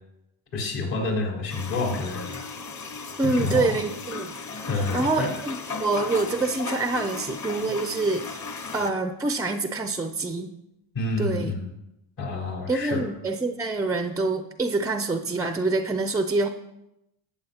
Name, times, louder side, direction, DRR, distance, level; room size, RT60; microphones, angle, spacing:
voice 1, 0.5-2.4 3.2-3.8 4.7-5.3 10.9-11.7 12.2-13.0, left 3 dB, 65° left, -2 dB, 4.1 m, -28 dB
sound 1, 1.5-8.9, left 4 dB, 35° left, 1.1 m, -36 dB
voice 2, 3.2-4.3 4.9-8.4 8.7-10.5 11.2-11.5 12.7-16.5, right 3 dB, 10° right, 8 dB, 0.3 m, -26 dB
14.5 x 8.4 x 2.8 m, 0.89 s
cardioid pair, 100°, 47 cm